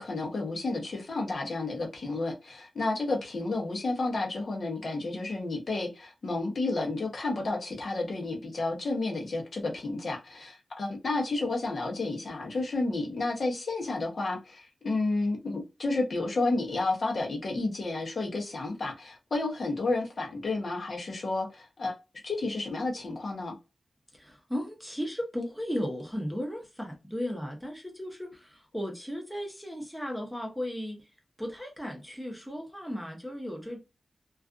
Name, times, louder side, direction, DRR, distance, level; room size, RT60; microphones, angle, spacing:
voice 1, 0.0-21.9 22.2-23.5, left 2 dB, 55° left, 0.8 m, -31 dB
voice 2, 24.1-31.0 31.4-33.8, equal, ahead, 0.8 m, -35 dB
2.4 x 2.3 x 2.4 m
wide cardioid pair, 105°, 0 cm